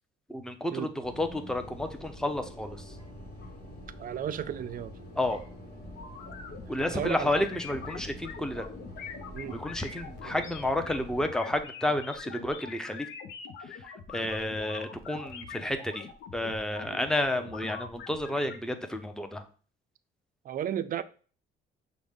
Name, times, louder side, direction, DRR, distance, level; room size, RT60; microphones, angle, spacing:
voice 1, 0.3-2.9 5.2-5.4 6.7-8.7 9.5-13.1 14.1-16.1 16.3-19.4, left 1 dB, 5° left, 0.6 m, -31 dB
sound 1, 1.0-11.3, left 1 dB, 55° left, 1.5 m, -46 dB
voice 2, 4.0-4.9 6.9-7.5 9.3-9.6 10.2-10.5 16.9-17.0 20.4-21.0, right 10 dB, 45° right, 0.4 m, -34 dB
sound 2, 6.0-18.6, left 5 dB, 75° left, 0.6 m, -44 dB
6.1 x 2.2 x 3.5 m
cardioid pair, 90°, 20 cm